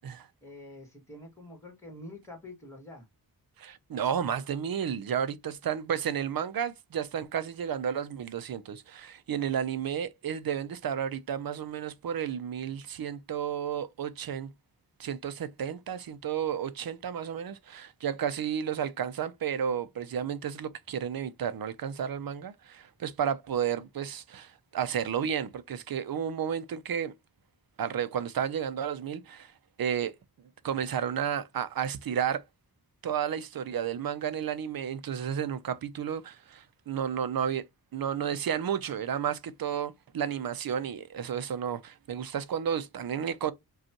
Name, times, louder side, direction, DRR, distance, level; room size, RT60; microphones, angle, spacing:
voice 1, 0.4-3.1, left 1 dB, 10° left, 1.8 m, -46 dB
voice 2, 3.6-14.5 15.0-27.1 27.8-29.5 29.8-30.1 30.6-32.4 33.0-37.7 37.9-43.5, right 8 dB, 65° right, 0.6 m, -32 dB
5.1 x 2.4 x 2.9 m
wide cardioid pair, 115°, 38 cm